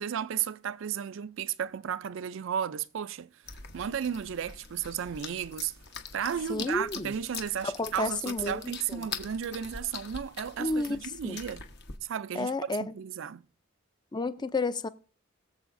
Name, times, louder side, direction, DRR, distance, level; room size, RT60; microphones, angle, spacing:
voice 1, 0.0-3.3 3.7-5.7 6.1-11.7 12.0-13.4, right 8 dB, 60° right, 0.4 m, -34 dB
sound 1, 3.4-12.0, left 6 dB, 55° left, 1.0 m, -43 dB
voice 2, 6.5-7.1 7.6-9.1 10.6-11.0 11.2-11.4 12.3-12.9 14.1-14.9, left 3 dB, 20° left, 0.5 m, -31 dB
21.5 x 7.2 x 2.6 m
head